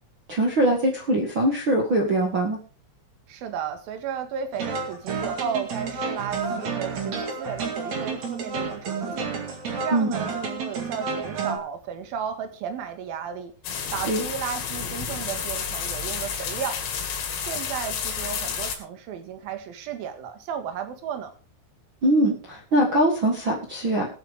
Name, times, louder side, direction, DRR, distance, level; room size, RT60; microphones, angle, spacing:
voice 1, 0.3-2.6 9.9-10.1 14.0-14.2 22.0-24.1, right 1 dB, 75° right, 0 dB, 1.1 m, -22 dB
voice 2, 3.3-9.3 9.8-13.5 13.9-16.8 17.5-21.3, right 7 dB, 60° right, 7 dB, 2.9 m, -34 dB
sound 1, 4.5-11.6, right 5 dB, 45° right, 2.7 m, -30 dB
sound 2, 13.6-18.8, left 7 dB, 80° left, 5.0 m, -31 dB
19.5 x 8.9 x 3.6 m, 0.35 s
omnidirectional pair, 5.8 m